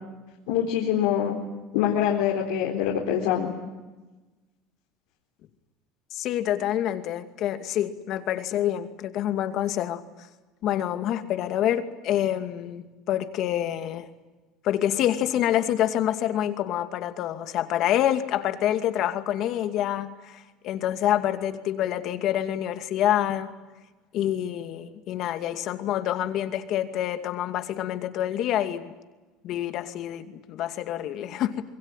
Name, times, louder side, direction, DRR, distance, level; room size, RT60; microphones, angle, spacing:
voice 1, 0.5-1.4 1.7-3.5, left 9 dB, 85° left, 0 dB, 4.1 m, -24 dB
voice 2, 6.1-10.0 10.6-14.1 14.6-23.5 24.1-28.9 29.4-31.6, left 11 dB, 55° left, 8 dB, 2.4 m, -27 dB
26.0 x 22.0 x 9.1 m, 1.2 s
supercardioid pair, 115°, 0 cm